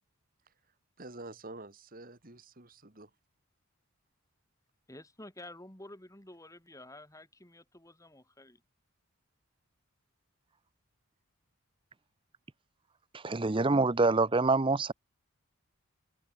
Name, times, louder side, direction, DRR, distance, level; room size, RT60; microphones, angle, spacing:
voice 1, 1.0-3.1, right 2 dB, 40° right, 2.7 m, -47 dB
voice 2, 4.9-8.6, left 1 dB, 15° left, 3.7 m, -50 dB
voice 3, 13.2-14.9, right 3 dB, 25° right, 0.6 m, -26 dB
head